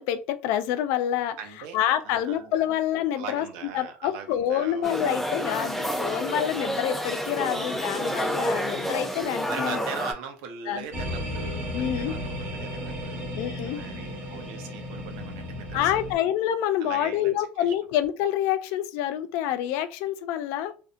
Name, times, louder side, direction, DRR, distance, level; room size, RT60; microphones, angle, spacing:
voice 1, 0.0-1.4 1.7-3.5 3.7-9.8 10.7-11.0 11.7-12.1 13.4-13.8 15.7-20.7, left 11 dB, 75° left, 0.3 m, -27 dB
voice 2, 1.4-1.8 2.0-2.6 3.2-5.2 7.3-7.8 9.4-13.3 13.6-16.0 16.8-17.7, right 6 dB, 80° right, 0.6 m, -40 dB
sound 1, 4.8-10.1, equal, ahead, 0.4 m, -29 dB
sound 2, 10.9-16.1, left 1 dB, 55° right, 1.0 m, -34 dB
2.6 x 2.1 x 2.4 m
supercardioid pair, 115°, 5 cm